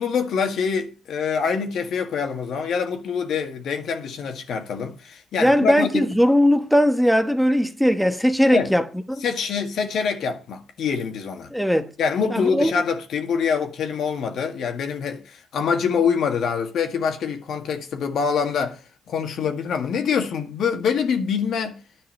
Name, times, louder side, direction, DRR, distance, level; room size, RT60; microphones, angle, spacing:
voice 1, 0.0-6.1 8.5-8.7 9.2-11.5 12.0-18.8 19.1-21.8, left 6 dB, 70° left, 1.8 m, -25 dB
voice 2, 5.4-9.2 11.5-11.9 12.3-12.7, equal, ahead, 1.1 m, -19 dB
10.5 x 5.6 x 7.7 m
cardioid pair, 90°, 0 cm